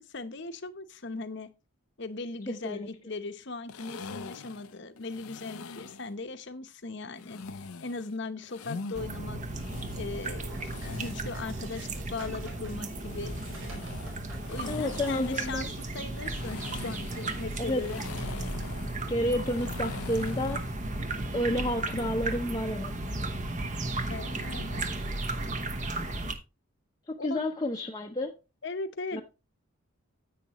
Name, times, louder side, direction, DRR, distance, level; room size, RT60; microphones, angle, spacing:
voice 1, 0.0-1.5 2.0-9.4 9.9-13.3 14.5-18.0 24.1-24.8 27.2-27.4 28.6-29.2, left 3 dB, 55° left, 0.9 m, -38 dB
voice 2, 2.5-2.9 14.7-15.7 17.6-17.9 19.1-20.6 21.3-23.3 27.1-28.3 29.1-29.2, left 1 dB, 20° left, 0.7 m, -31 dB
sound 1, 3.7-6.1 7.2-9.0 9.4-11.4 12.9-20.8, left 4 dB, 85° left, 0.6 m, -43 dB
sound 2, 8.9-26.3, right 2 dB, 35° right, 0.9 m, -35 dB
sound 3, 9.7-17.7 18.1-19.1, right 3 dB, 65° right, 4.7 m, -52 dB
10.0 x 8.5 x 3.0 m
head